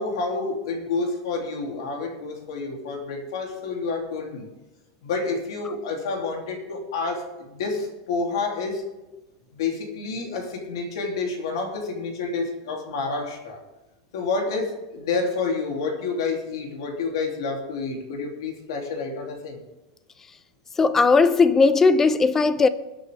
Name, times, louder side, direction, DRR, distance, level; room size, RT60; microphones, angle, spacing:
voice 1, 0.0-4.5 5.0-8.8 9.5-13.6 14.1-19.6, left 4 dB, 85° left, 3.0 m, -29 dB
voice 2, 20.8-22.7, left 4 dB, 15° left, 0.6 m, -17 dB
21.5 x 9.0 x 3.5 m
supercardioid pair, 145°, 2 cm